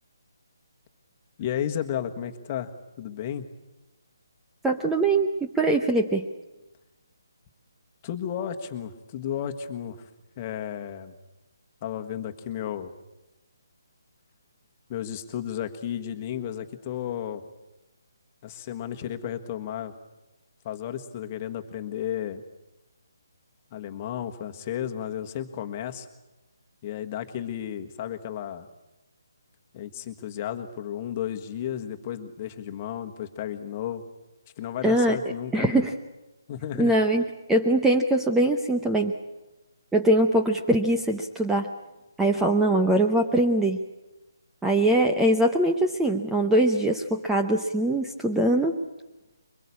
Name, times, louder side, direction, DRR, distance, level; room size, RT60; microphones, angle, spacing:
voice 1, 1.4-2.7 3.0-3.5 8.0-10.0 10.4-11.2 11.8-12.9 14.9-17.4 18.4-19.9 20.6-22.4 23.7-26.1 26.8-28.7 29.7-34.0 34.6-35.8 36.5-36.9, left 10 dB, 25° left, 6 dB, 1.5 m, -33 dB
voice 2, 4.6-6.3 34.8-35.2 35.5-35.9 36.8-37.2 37.5-39.1 39.9-41.7 42.2-43.8 44.6-48.8, right 1 dB, 5° right, 3 dB, 0.8 m, -22 dB
23.5 x 21.5 x 8.5 m, 0.99 s
hypercardioid pair, 160°, 2 cm